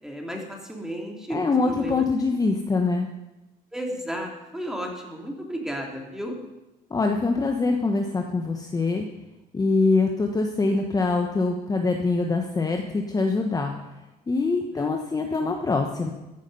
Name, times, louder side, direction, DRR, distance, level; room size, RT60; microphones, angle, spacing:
voice 1, 0.0-2.0 3.7-6.4 14.7-15.3, equal, 5° right, 1 dB, 2.8 m, -34 dB
voice 2, 1.3-3.1 6.9-9.0 9.5-13.7 14.3-16.1, left 3 dB, 20° left, 3 dB, 1.2 m, -24 dB
14.5 x 9.9 x 5.5 m, 1.0 s
cardioid pair, 110°, 17 cm